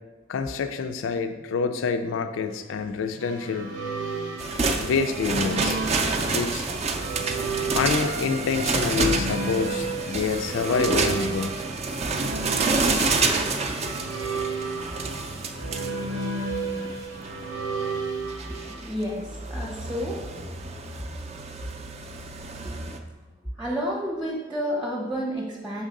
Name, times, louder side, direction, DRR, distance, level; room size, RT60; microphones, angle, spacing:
voice 1, 0.3-3.7 4.8-5.8 6.3-6.7 7.8-11.7, left 5 dB, 80° left, 8 dB, 0.4 m, -27 dB
sound 1, 3.2-18.9, right 3 dB, 85° right, 0.9 m, -33 dB
sound 2, 4.4-23.0, right 3 dB, 35° right, 0.4 m, -29 dB
voice 2, 18.4-20.3 23.6-25.8, equal, 10° right, -1 dB, 0.8 m, -30 dB
5.8 x 3.7 x 5.1 m, 1.3 s
head